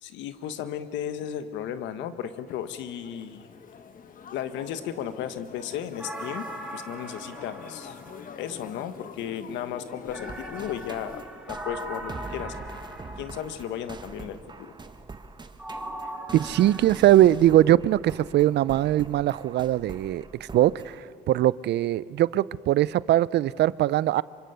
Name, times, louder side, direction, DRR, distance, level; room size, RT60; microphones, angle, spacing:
voice 1, 0.0-3.5 4.3-8.0 8.3-11.2 11.5-12.5 13.2-14.7, left 9 dB, 85° left, 11 dB, 1.4 m, -35 dB
sound 1, 2.5-11.2, left 6 dB, 50° left, 1.3 m, -45 dB
sound 2, 6.0-8.8 10.1-13.9 15.6-16.9, right 1 dB, 5° right, 3.3 m, -40 dB
sound 3, 10.1-21.0, right 3 dB, 25° right, 1.4 m, -43 dB
voice 2, 16.3-24.2, right 13 dB, 70° right, 20 dB, 0.5 m, -21 dB
26.0 x 24.5 x 6.9 m, 2.5 s
cardioid pair, 90°, 18 cm